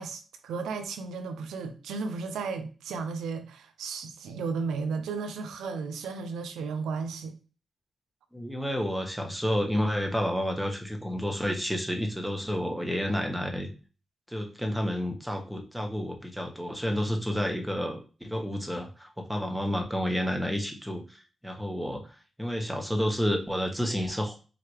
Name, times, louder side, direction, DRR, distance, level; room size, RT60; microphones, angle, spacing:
voice 1, 0.0-7.3, right 4 dB, 90° right, 0.6 m, -34 dB
voice 2, 8.3-13.7 14.3-22.1 22.4-24.4, equal, 5° right, 1.3 m, -30 dB
5.1 x 2.8 x 3.2 m
supercardioid pair, 50°, 0 cm